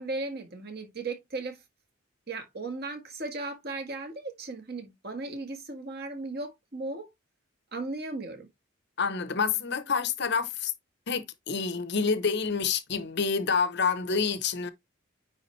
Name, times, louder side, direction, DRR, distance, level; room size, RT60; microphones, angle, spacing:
voice 1, 0.0-1.6 2.3-7.1 7.7-8.5, right 3 dB, 45° right, 1.7 m, -36 dB
voice 2, 9.0-10.7 11.1-14.7, left 5 dB, 50° left, 0.7 m, -28 dB
9.5 x 3.5 x 3.1 m
head